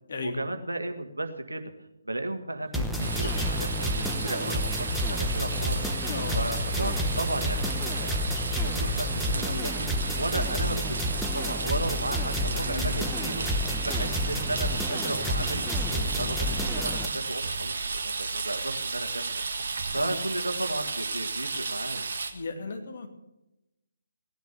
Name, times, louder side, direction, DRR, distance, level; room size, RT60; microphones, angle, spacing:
voice 1, 0.2-1.6 2.0-5.9 6.4-13.4 13.9-17.8 18.0-19.4 19.9-22.1, right 2 dB, 75° right, 7 dB, 1.8 m, -34 dB
sound 1, 2.7-11.4, left 5 dB, 25° left, 1.9 m, -51 dB
sound 2, 2.7-17.1, equal, ahead, 1.0 m, -30 dB
sound 3, 3.0-22.3, right 4 dB, 50° right, 1.8 m, -33 dB
voice 2, 6.1-6.5 12.7-13.1 19.9-20.2 22.3-23.1, left 4 dB, 50° left, 5 dB, 2.6 m, -36 dB
17.5 x 10.5 x 6.9 m, 0.93 s
figure-of-eight pair, 140°, 0 cm